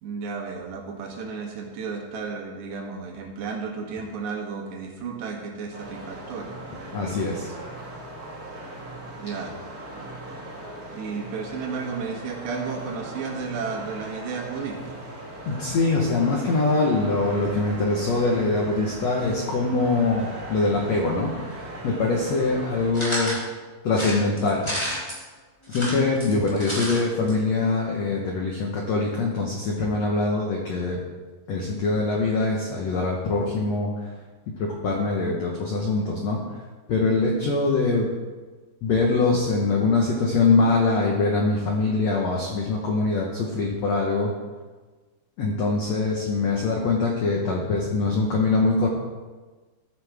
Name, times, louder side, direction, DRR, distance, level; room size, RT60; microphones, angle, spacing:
voice 1, 0.0-6.6 9.2-9.6 9.9-10.1 10.9-15.0, right 5 dB, 80° right, 1 dB, 3.6 m, -33 dB
sound 1, 5.7-22.9, right 1 dB, 55° right, 1.0 m, -39 dB
voice 2, 6.9-7.5 15.5-23.4 23.8-25.0 25.7-31.0 31.5-34.1 34.6-36.4 36.9-38.1 38.8-44.3 45.4-48.9, left 3 dB, 80° left, -1 dB, 1.5 m, -23 dB
sound 2, 22.9-23.4 23.9-25.2 25.6-27.0 27.3-27.4 27.6-27.7, equal, 10° left, 1.9 m, -30 dB
13.5 x 9.4 x 3.5 m, 1.3 s
omnidirectional pair, 4.9 m